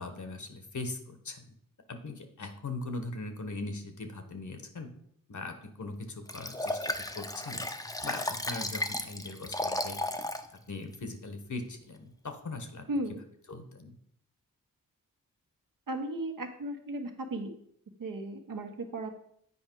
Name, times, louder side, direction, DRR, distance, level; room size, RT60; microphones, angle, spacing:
voice 1, 0.0-1.5 1.9-4.9 5.3-7.7 8.0-10.0 10.7-12.9 13.5-14.0, left 2 dB, 60° left, 7 dB, 1.3 m, -40 dB
Liquid, 6.3-10.5 10.9-11.0, left 1 dB, 10° left, 0.7 m, -34 dB
voice 2, 12.9-13.2 15.9-17.5 18.0-19.1, right 1 dB, 70° right, 3 dB, 1.3 m, -35 dB
8.5 x 4.8 x 4.6 m, 0.68 s
cardioid pair, 50°, 34 cm